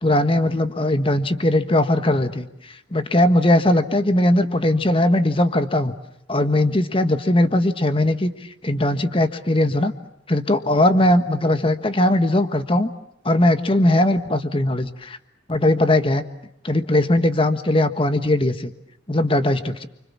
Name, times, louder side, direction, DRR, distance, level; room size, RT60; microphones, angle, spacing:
voice 1, 0.0-5.9 6.3-8.3 8.6-9.9 10.3-12.9 13.2-15.2 15.5-16.2 16.6-18.7 19.1-19.9, left 1 dB, 30° left, 9 dB, 1.4 m, -19 dB
29.5 x 25.5 x 7.3 m, 0.79 s
head